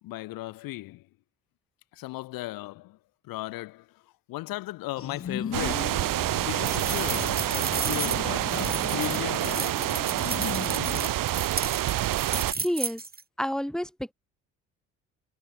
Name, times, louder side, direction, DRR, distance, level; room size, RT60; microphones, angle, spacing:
voice 1, 0.0-1.1 1.9-3.0 3.2-10.0, left 18 dB, 70° left, 2.7 m, -37 dB
sound 1, 5.0-11.1, left 7 dB, 40° left, 1.6 m, -38 dB
sound 2, 5.5-12.5, right 14 dB, 60° right, 3.1 m, -28 dB
sound 3, 6.6-13.2, right 4 dB, 25° right, 2.7 m, -34 dB
voice 2, 12.5-13.0 13.4-14.1, equal, ahead, 5.3 m, -29 dB
hypercardioid pair, 50°, 36 cm